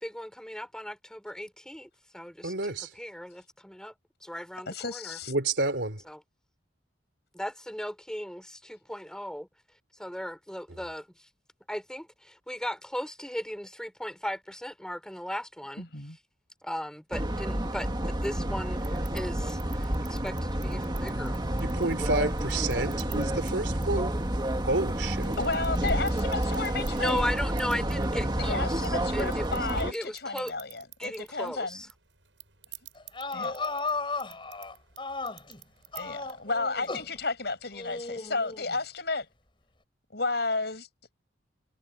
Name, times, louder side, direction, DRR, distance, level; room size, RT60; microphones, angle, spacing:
voice 1, 0.0-3.9 4.2-5.2 6.0-6.2 7.3-9.5 10.0-11.3 11.7-16.2 16.6-21.6 25.4-25.7 27.0-30.5 31.0-31.9, equal, 5° left, 5.5 m, -37 dB
voice 2, 2.4-2.9 5.3-6.0 21.6-24.1 24.6-25.4, right 2 dB, 70° right, 3.6 m, -30 dB
voice 3, 4.7-5.3 15.8-16.2 25.4-27.3 28.4-31.8 33.3-33.6 36.0-39.3 40.1-40.9, left 3 dB, 60° left, 7.5 m, -32 dB
sound 1, 17.1-29.9, right 1 dB, 25° right, 1.9 m, -30 dB
sound 2, 18.8-37.3, right 14 dB, 90° right, 8.0 m, -53 dB
sound 3, 33.0-35.6 35.9-37.2 37.7-38.8, left 3 dB, 25° left, 7.7 m, -35 dB
head